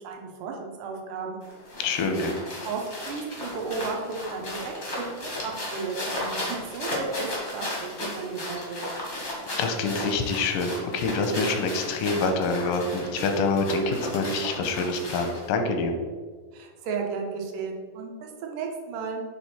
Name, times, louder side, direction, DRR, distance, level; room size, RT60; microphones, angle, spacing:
voice 1, 0.0-1.4 2.6-7.3 7.5-7.7 8.0-8.8 16.5-19.2, right 5 dB, 80° right, 1 dB, 2.3 m, -34 dB
sound 1, 1.4-15.5, left 1 dB, 60° left, 0.7 m, -35 dB
voice 2, 1.8-2.4 9.6-15.9, left 3 dB, 85° left, 5 dB, 2.2 m, -26 dB
7.5 x 3.4 x 4.2 m, 1.5 s
omnidirectional pair, 3.8 m